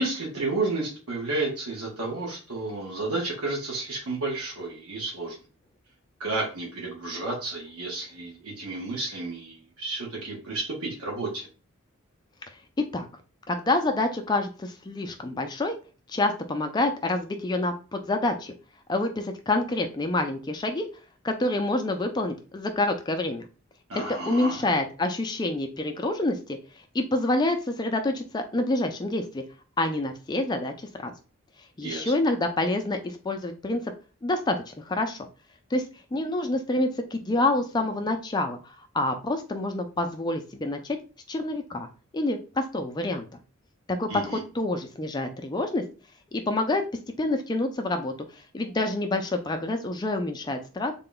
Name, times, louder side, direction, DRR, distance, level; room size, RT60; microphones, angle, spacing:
voice 1, 0.0-5.4 6.2-11.5 23.9-24.6 31.8-32.1 44.1-44.4, right 2 dB, 85° right, -2 dB, 1.0 m, -31 dB
voice 2, 13.5-15.8 16.1-18.5 18.9-20.9 21.2-23.4 24.1-26.6 26.9-29.4 29.8-31.1 31.8-33.9 34.2-35.3 35.7-35.8 36.1-38.6 38.9-41.0 41.3-41.9 42.1-43.3 44.0-45.8 46.3-50.9, left 2 dB, 20° left, 6 dB, 0.3 m, -27 dB
3.7 x 2.2 x 3.8 m, 0.35 s
head